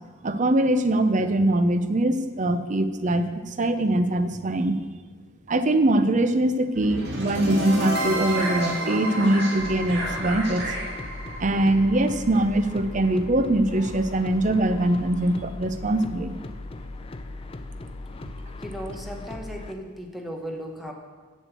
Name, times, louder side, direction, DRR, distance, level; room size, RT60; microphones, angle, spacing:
voice 1, 0.2-4.8 5.5-10.7 11.4-16.4, right 1 dB, 35° right, 9 dB, 0.6 m, -22 dB
sound 1, 6.7-12.8, right 1 dB, 50° right, 2.1 m, -30 dB
sound 2, 9.6-19.7, left 2 dB, 25° left, 0.4 m, -38 dB
voice 2, 18.6-20.9, equal, ahead, 1 dB, 1.0 m, -36 dB
7.6 x 6.4 x 8.0 m, 1.5 s
head